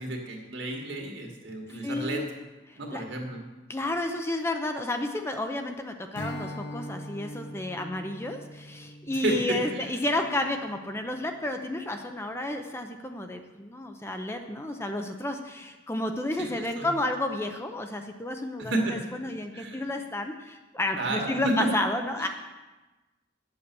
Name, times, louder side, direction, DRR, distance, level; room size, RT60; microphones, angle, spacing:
voice 1, 0.0-2.2 2.8-3.4 9.2-9.9 16.4-16.9 18.6-19.8 21.0-21.7 22.2-22.3, right 2 dB, 75° right, 1 dB, 2.2 m, -31 dB
voice 2, 1.7-2.3 2.7-3.0 3.7-22.3, left 1 dB, 15° left, 5 dB, 0.6 m, -31 dB
Strum, 6.1-11.6, equal, 75° left, 1.1 m, -42 dB
9.6 x 7.9 x 6.9 m, 1.1 s
head